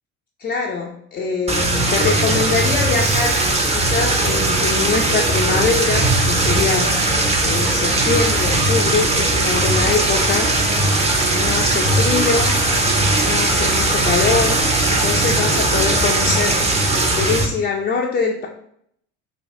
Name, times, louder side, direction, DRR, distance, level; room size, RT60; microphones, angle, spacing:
voice 1, 0.4-3.4 3.7-7.0 7.4-10.5 11.3-12.6 13.2-18.5, left 4 dB, 20° left, 0 dB, 0.5 m, -23 dB
sound 1, 1.5-17.5, right 2 dB, 15° right, 0.7 m, -18 dB
Crash cymbal, 3.0-4.6, right 2 dB, 85° right, 0.9 m, -34 dB
5.3 x 2.3 x 3.6 m, 0.69 s
figure-of-eight pair, 60°, 42 cm